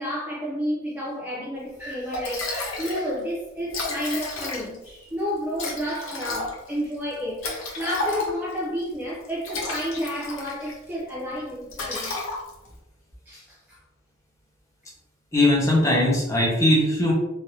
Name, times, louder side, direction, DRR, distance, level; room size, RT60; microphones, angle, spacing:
voice 1, 0.0-12.3 13.3-13.8, equal, 10° right, -6 dB, 0.4 m, -31 dB
Liquid, 1.8-1.9 2.1-3.1 3.3-3.4 3.6-4.9 5.6-8.6 9.2-10.8 11.1-11.3 11.7-12.8, left 2 dB, 70° left, 0.7 m, -32 dB
voice 2, 15.3-17.1, left 1 dB, 15° left, -4 dB, 0.7 m, -20 dB
3.2 x 2.5 x 2.8 m, 0.98 s
head